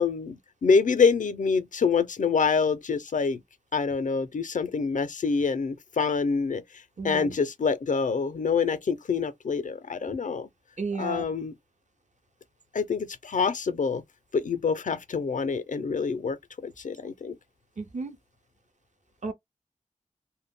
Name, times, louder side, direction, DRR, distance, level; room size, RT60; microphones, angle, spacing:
voice 1, 0.0-3.4 3.7-6.6 7.0-10.5 11.0-11.6 12.7-14.0 14.3-17.4, left 5 dB, 70° left, 0.4 m, -26 dB
voice 2, 7.0-7.3 10.8-11.3 17.8-18.2 19.2-19.3, right 3 dB, 65° right, 0.7 m, -33 dB
2.1 x 2.0 x 3.5 m
wide cardioid pair, 80°, 13 cm